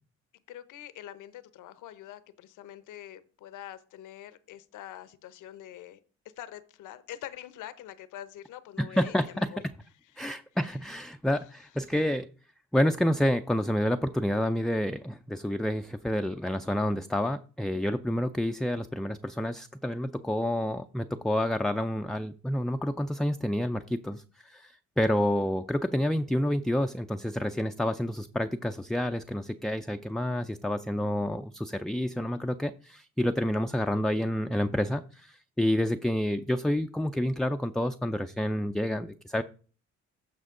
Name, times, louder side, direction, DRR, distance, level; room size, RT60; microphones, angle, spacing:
voice 1, 0.5-6.0 6.4-9.6 10.1-10.2 10.6-10.8 11.9-12.0, left 12 dB, 85° left, 14 dB, 0.8 m, -45 dB
voice 2, 8.8-9.5 10.2-12.3 12.7-39.4, left 1 dB, ahead, 6 dB, 0.3 m, -29 dB
14.5 x 5.1 x 3.7 m, 0.40 s
cardioid pair, 90°, 30 cm